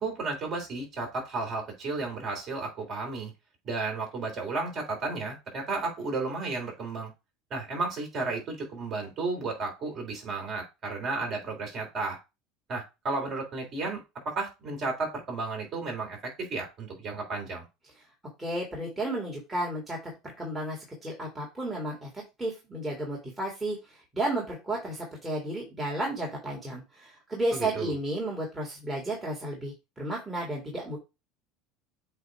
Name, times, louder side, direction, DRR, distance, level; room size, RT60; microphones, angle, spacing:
voice 1, 0.0-3.3 3.6-7.1 7.5-12.2 12.7-17.6 27.5-28.0, right 3 dB, 35° right, 1 dB, 3.3 m, -33 dB
voice 2, 18.4-20.0 20.4-22.1 22.4-23.8 24.1-31.0, right 1 dB, 10° right, -3 dB, 2.1 m, -32 dB
7.9 x 2.7 x 4.6 m, 0.25 s
supercardioid pair, 140°, 0 cm